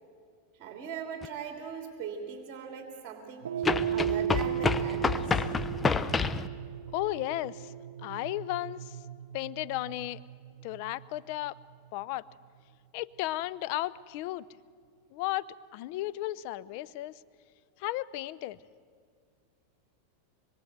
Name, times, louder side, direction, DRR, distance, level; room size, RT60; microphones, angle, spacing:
voice 1, 0.6-5.4, right 6 dB, 45° right, 3 dB, 3.1 m, -40 dB
sound 1, 1.2-1.3 3.6-6.5, left 4 dB, 15° left, 0.7 m, -28 dB
sound 2, 3.4-11.9, right 10 dB, 90° right, 0.7 m, -36 dB
voice 2, 6.9-7.7 8.0-9.0 9.3-10.2 10.6-11.6 11.9-12.3 12.9-14.4 15.1-17.2 17.8-18.6, left 16 dB, 55° left, 19 dB, 0.7 m, -34 dB
25.0 x 22.5 x 8.1 m, 2.1 s
hypercardioid pair, 115°, 0 cm